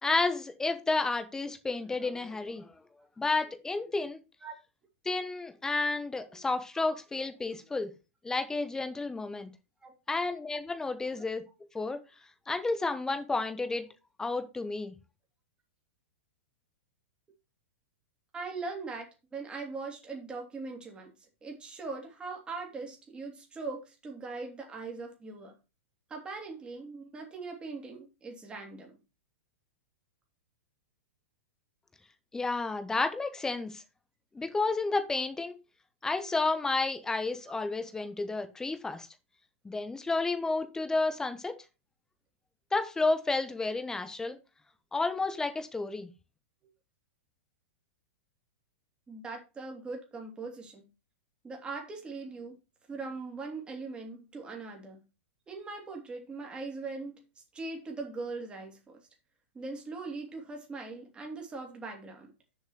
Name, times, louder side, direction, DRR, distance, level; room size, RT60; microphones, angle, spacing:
voice 1, 0.0-2.7 3.2-4.2 5.0-7.9 8.2-9.5 10.1-11.4 11.7-12.0 12.5-13.9 14.2-14.9 32.3-33.8 34.3-35.6 36.0-39.1 39.6-41.6 42.7-44.4 44.9-46.1, left 3 dB, 10° left, 1.2 m, -31 dB
voice 2, 18.3-21.1 21.4-25.5 26.1-29.0 49.1-50.9 51.4-52.6 52.9-55.0 55.5-57.2 57.5-59.0 59.5-62.3, right 3 dB, 15° right, 2.8 m, -40 dB
7.1 x 5.4 x 6.4 m
hypercardioid pair, 140°, 7 cm